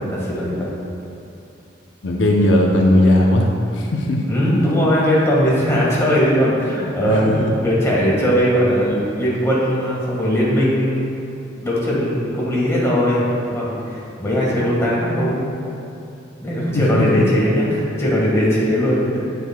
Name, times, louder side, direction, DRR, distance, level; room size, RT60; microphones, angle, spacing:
voice 1, 0.1-0.7 4.3-7.3 7.6-11.2 11.6-15.4 16.4-19.2, equal, 15° left, -6 dB, 1.5 m, -19 dB
voice 2, 2.0-4.2 7.1-7.5 16.7-17.2, left 1 dB, 85° left, 0 dB, 0.7 m, -17 dB
8.2 x 7.8 x 2.2 m, 2.7 s
head